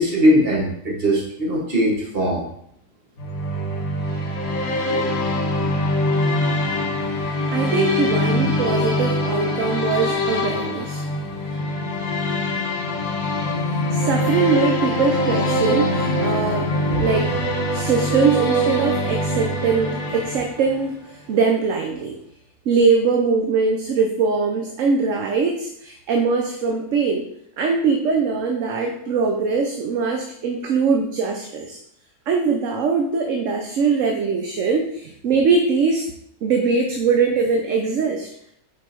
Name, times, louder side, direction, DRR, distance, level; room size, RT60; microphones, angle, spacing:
voice 1, 0.0-2.5 4.9-5.1, equal, 40° right, -2 dB, 1.8 m, -20 dB
sound 1, 3.2-20.9, left 1 dB, 70° left, 1.6 m, -23 dB
voice 2, 7.5-11.0 13.7-22.2 22.7-27.3 27.6-31.8 32.3-36.1 36.4-38.3, right 5 dB, 60° right, 3 dB, 1.0 m, -22 dB
5.7 x 4.8 x 4.4 m, 0.71 s
omnidirectional pair, 1.6 m